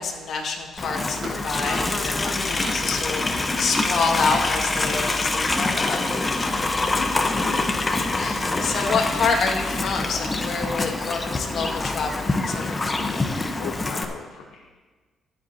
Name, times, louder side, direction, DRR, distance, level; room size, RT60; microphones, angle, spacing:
voice 1, 0.0-6.0 6.3-6.7 8.1-13.3, left 4 dB, 65° left, 1 dB, 2.0 m, -28 dB
Livestock farm animals working animals, 0.8-14.1, left 2 dB, 25° left, 1.0 m, -25 dB
sound 1, 0.9-12.2, equal, 55° right, 1.8 m, -40 dB
voice 2, 6.9-7.6 13.6-14.7, left 6 dB, 90° left, 0 dB, 0.8 m, -37 dB
21.5 x 7.9 x 2.8 m, 1.4 s
cardioid pair, 90°, 0 cm